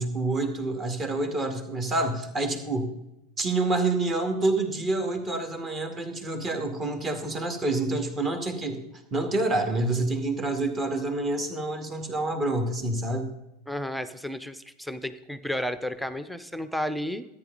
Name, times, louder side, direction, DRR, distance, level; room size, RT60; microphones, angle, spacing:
voice 1, 0.0-2.9 3.4-8.8 9.1-13.3, right 2 dB, 25° right, 6 dB, 2.1 m, -27 dB
voice 2, 13.7-17.2, left 1 dB, ahead, 11 dB, 0.7 m, -32 dB
13.5 x 10.0 x 4.0 m, 0.88 s
hypercardioid pair, 85°, 0 cm